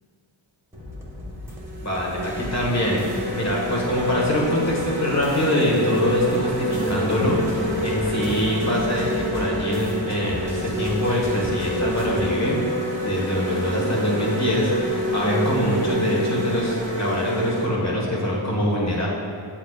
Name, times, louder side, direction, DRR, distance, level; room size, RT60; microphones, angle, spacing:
sound 1, 0.7-12.3, left 1 dB, 5° right, 1.4 m, -38 dB
sound 2, 0.7-0.9 1.5-17.6, equal, 75° right, 1.8 m, -27 dB
voice 1, 1.8-3.0 3.3-12.6 13.0-19.1, left 1 dB, 35° left, -3 dB, 1.8 m, -24 dB
8.2 x 7.4 x 2.5 m, 2.2 s
wide cardioid pair, 65°, 47 cm